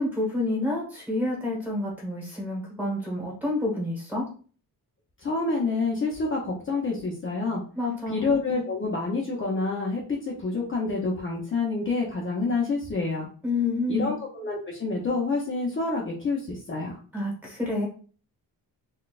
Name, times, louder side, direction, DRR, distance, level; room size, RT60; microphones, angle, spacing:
voice 1, 0.0-4.2 7.7-8.3 13.4-14.1 17.1-17.9, left 2 dB, 5° right, -3 dB, 1.1 m, -28 dB
voice 2, 5.2-7.6 8.1-13.3 13.9-17.0, left 3 dB, 35° left, -3 dB, 0.6 m, -28 dB
4.0 x 2.3 x 2.3 m, 0.40 s
wide cardioid pair, 165°, 37 cm